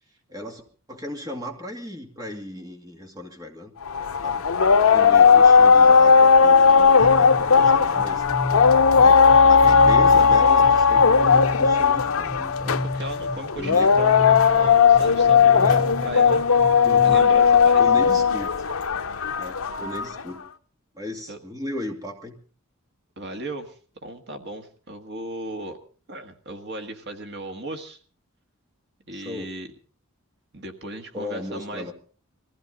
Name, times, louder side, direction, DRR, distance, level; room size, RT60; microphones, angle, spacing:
voice 1, 0.3-0.6 0.9-3.7 4.2-4.4 4.9-8.2 9.0-12.8 13.6-13.9 15.6-15.8 16.8-17.0 17.8-18.5 19.4-20.5 20.9-22.4 29.1-29.5 31.1-31.9, left 1 dB, 20° right, 3 dB, 2.4 m, -36 dB
sound 1, 3.9-20.2, left 5 dB, 80° left, 0.7 m, -17 dB
sound 2, 7.0-17.1, left 1 dB, 85° right, 3.8 m, -33 dB
voice 2, 12.7-16.5 17.0-18.1 21.3-21.4 23.2-25.8 26.1-28.0 29.1-29.7 30.5-31.9, right 1 dB, 55° right, 5 dB, 1.7 m, -36 dB
22.0 x 15.5 x 3.9 m, 0.40 s
head